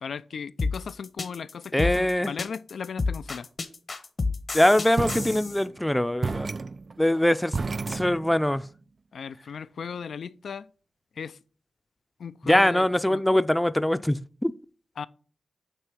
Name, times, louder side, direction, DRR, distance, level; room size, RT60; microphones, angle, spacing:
voice 1, 0.0-3.5 9.1-10.7 11.2-11.4 12.2-13.2 15.0-15.1, left 6 dB, 75° left, 0.4 m, -37 dB
sound 1, 0.6-5.6, left 3 dB, 55° left, 0.9 m, -30 dB
voice 2, 1.7-2.3 4.5-6.5 7.0-7.6 7.9-8.7 12.4-14.5, left 1 dB, 10° left, 0.5 m, -22 dB
sound 2, 4.9-5.8 6.2-8.6, right 4 dB, 50° right, 0.3 m, -32 dB
9.1 x 3.2 x 6.1 m
cardioid pair, 55°, 0 cm